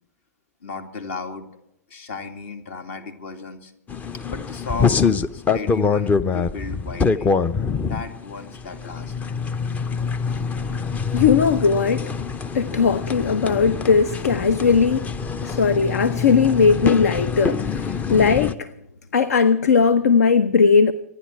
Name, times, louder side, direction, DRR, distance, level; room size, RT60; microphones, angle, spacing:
voice 1, 0.6-1.5 1.9-3.7 4.3-5.0 5.3-7.3 7.8-9.1, left 4 dB, 50° left, 2.5 m, -35 dB
sound 1, 3.9-18.5, left 5 dB, 15° left, 0.6 m, -25 dB
voice 2, 11.1-12.1 12.5-15.1 15.4-18.7 19.1-20.9, left 5 dB, 70° left, 0.8 m, -18 dB
26.0 x 10.5 x 4.7 m
figure-of-eight pair, 105°, 9 cm